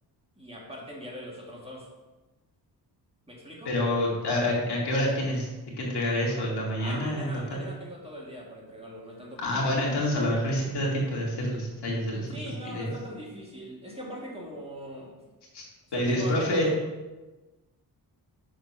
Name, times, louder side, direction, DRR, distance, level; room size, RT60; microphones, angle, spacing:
voice 1, 0.4-1.9 3.3-3.7 6.8-9.7 12.3-15.1 15.9-16.8, equal, 15° right, -4 dB, 2.0 m, -41 dB
voice 2, 3.7-5.5 5.8-7.3 7.6-7.7 9.4-12.3 12.7-12.9 15.5-15.6 15.9-16.7, left 1 dB, 80° left, -4 dB, 2.2 m, -27 dB
6.3 x 4.3 x 5.5 m, 1.2 s
cardioid pair, 85°, 40 cm